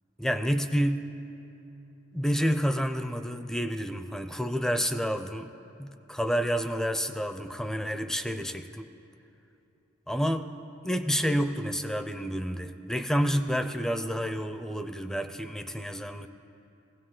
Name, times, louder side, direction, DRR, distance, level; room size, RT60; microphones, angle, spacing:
voice 1, 0.2-1.1 2.1-5.5 5.8-8.9 10.1-10.5 10.8-16.3, equal, 5° left, 9 dB, 0.4 m, -29 dB
19.0 x 16.5 x 3.8 m, 2.8 s
head